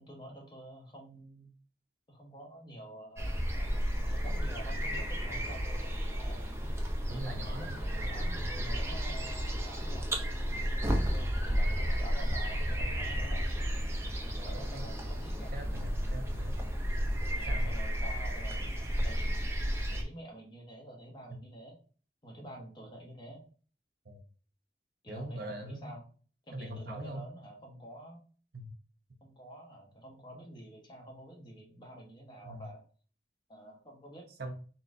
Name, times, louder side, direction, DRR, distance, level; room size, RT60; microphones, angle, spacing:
voice 1, 0.0-1.5 2.1-6.5 7.1-10.3 10.9-13.5 14.2-15.5 17.4-18.6 19.0-19.4 19.9-21.8 22.2-23.4 25.0-26.0 26.5-28.2 29.2-32.8 33.5-34.3, right 1 dB, 25° left, 0 dB, 1.2 m, -48 dB
sound 1, 3.2-20.0, equal, 15° right, 0.6 m, -32 dB
voice 2, 7.1-8.3 10.8-11.3 14.7-14.9 15.5-16.6 17.5-17.7 24.1-24.2 25.1-25.9 26.5-27.3 28.5-28.7 32.4-32.6 34.4-34.5, right 1 dB, 60° right, 4 dB, 0.8 m, -42 dB
4.2 x 3.7 x 2.6 m, 0.40 s
head